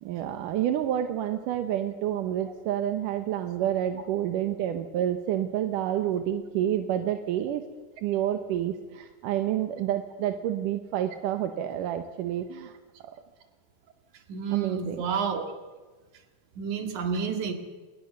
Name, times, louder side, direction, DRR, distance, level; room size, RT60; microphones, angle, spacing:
voice 1, 0.0-7.6 8.0-13.1 14.5-15.0, right 11 dB, 85° right, 8 dB, 2.7 m, -29 dB
voice 2, 14.3-15.5 16.6-17.5, right 6 dB, 70° right, 6 dB, 3.5 m, -30 dB
27.0 x 21.0 x 6.8 m, 1.3 s
omnidirectional pair, 3.7 m